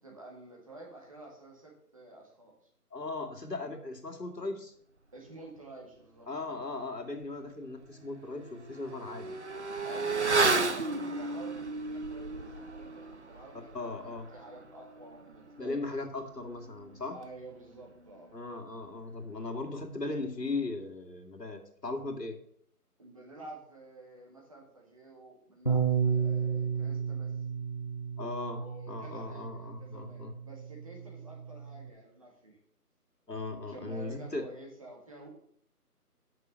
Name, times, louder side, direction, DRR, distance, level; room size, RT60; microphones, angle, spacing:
voice 1, 0.0-2.7 5.1-6.7 9.8-15.8 17.1-18.3 23.0-27.4 28.5-32.6 33.7-35.3, right 2 dB, 20° right, -1 dB, 1.8 m, -50 dB
voice 2, 2.9-4.7 6.3-9.4 13.7-14.3 15.6-17.2 18.3-22.4 28.2-30.3 33.3-34.4, left 3 dB, 90° left, 3 dB, 2.6 m, -38 dB
Motorcycle / Accelerating revving vroom, 7.2-7.3 7.7-17.7 18.0-18.1, right 3 dB, 45° right, 0.8 m, -34 dB
Bass guitar, 25.7-31.9, right 6 dB, 30° left, 0.7 m, -33 dB
8.9 x 6.8 x 6.6 m, 0.67 s
figure-of-eight pair, 165°, 47 cm